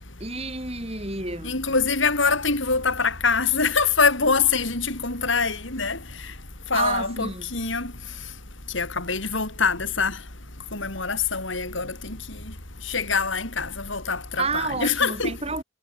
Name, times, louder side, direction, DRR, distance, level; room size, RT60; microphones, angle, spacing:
voice 1, 0.2-1.6 6.7-7.5 14.4-15.6, right 3 dB, 30° right, 6.0 m, -30 dB
voice 2, 1.4-6.0 6.7-7.9 8.7-10.2 10.7-12.2 12.9-15.3, left 4 dB, 75° left, 6.3 m, -24 dB
head